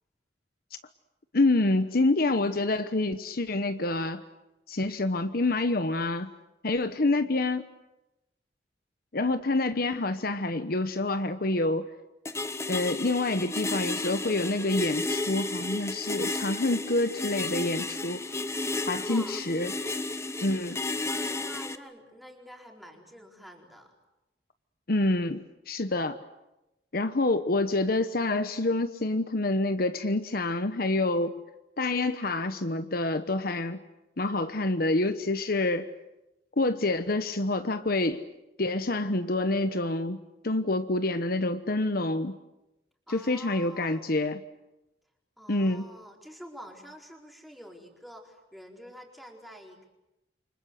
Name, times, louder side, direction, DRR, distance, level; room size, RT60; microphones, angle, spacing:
voice 1, 1.3-4.2 4.7-6.3 6.6-7.6 9.1-11.9 12.7-18.2 18.9-19.7 20.4-20.8 24.9-26.2 26.9-31.4 31.8-33.8 34.2-35.9 36.6-38.2 38.6-42.4 43.1-44.4 45.5-45.9, left 2 dB, 55° left, 10 dB, 1.1 m, -27 dB
voice 2, 6.9-7.4 18.9-19.4 20.6-23.9 43.1-44.1 45.4-49.9, equal, ahead, 1 dB, 4.5 m, -47 dB
sound 1, 12.2-21.8, left 2 dB, 15° left, 1.0 m, -33 dB
28.5 x 25.5 x 8.1 m, 0.95 s
head